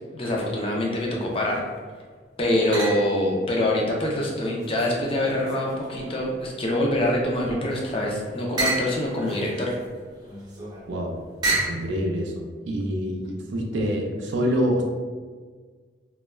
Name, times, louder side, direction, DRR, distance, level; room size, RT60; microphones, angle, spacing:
voice 1, 0.1-1.6 2.4-9.7, left 1 dB, 30° left, -2 dB, 0.4 m, -25 dB
sound 1, 1.2-1.8 2.7-3.3 3.8-6.5 6.9-11.9, right 2 dB, 20° right, 0.5 m, -32 dB
voice 2, 11.5-12.3 12.7-14.8, equal, 75° right, 1 dB, 0.4 m, -26 dB
2.2 x 2.2 x 3.1 m, 1.5 s
head